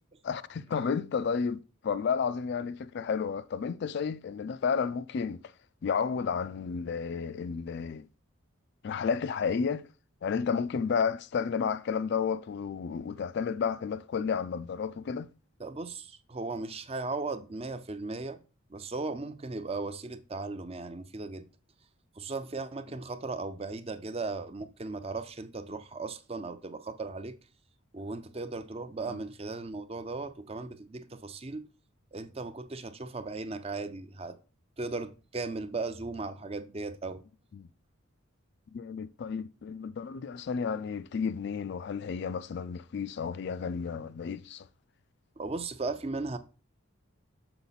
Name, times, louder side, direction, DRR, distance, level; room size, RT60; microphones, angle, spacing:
voice 1, 0.2-5.5 5.8-8.1 8.8-9.9 10.2-15.3 29.1-29.2 37.5-37.7 38.7-44.7, left 6 dB, 55° left, 0.3 m, -32 dB
voice 2, 15.6-18.4 18.7-21.4 22.2-27.3 27.9-31.7 32.1-34.4 34.8-37.2 45.4-46.4, right 3 dB, 30° right, 0.5 m, -37 dB
6.9 x 4.9 x 4.0 m
head